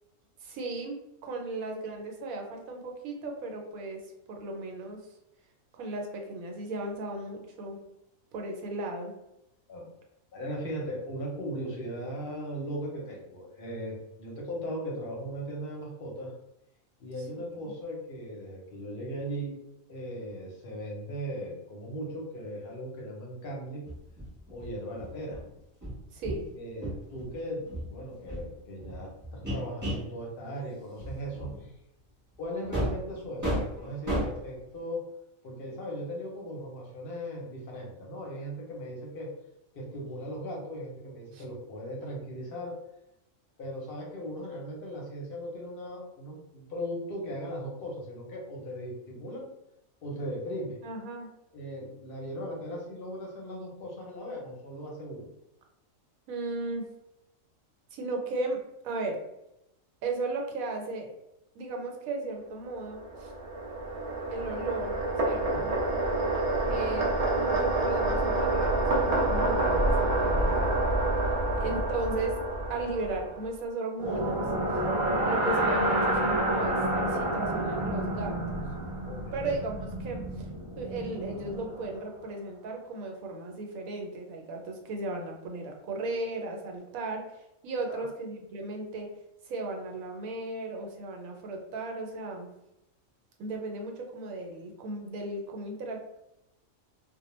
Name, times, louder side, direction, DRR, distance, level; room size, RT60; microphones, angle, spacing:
voice 1, 0.4-4.0 4.3-5.0 5.8-7.8 8.3-9.1 17.4-17.7 26.1-26.5 41.3-41.4 50.8-51.3 56.3-56.9 57.9-59.2 60.0-61.1 61.6-63.3 64.3-65.7 66.7-70.8 71.6-72.3 72.7-74.4 75.2-78.6 79.3-80.5 80.8-87.2 87.6-89.1 89.5-92.5 93.4-96.0, right 2 dB, 90° right, 2 dB, 1.0 m, -36 dB
voice 2, 10.3-16.3 17.0-19.5 19.9-23.8 24.5-25.4 26.5-31.7 32.4-35.0 35.4-39.3 39.7-42.8 43.6-49.5 50.0-50.8 51.5-55.3 65.5-65.7 71.2-71.7 75.2-75.4 79.0-79.6 87.9-88.0, equal, 55° left, -2 dB, 0.7 m, -38 dB
sound 1, 23.9-26.5 26.8-27.4 27.7-30.1 30.6-30.7 31.0-31.6 32.6-33.1 33.4-34.5, right 1 dB, 15° right, 0.7 m, -34 dB
sound 2, 62.8-73.5, right 2 dB, 65° right, 0.3 m, -28 dB
sound 3, 74.0-82.0, right 1 dB, 45° right, 0.9 m, -29 dB
2.2 x 2.1 x 3.0 m, 0.88 s
omnidirectional pair, 1.4 m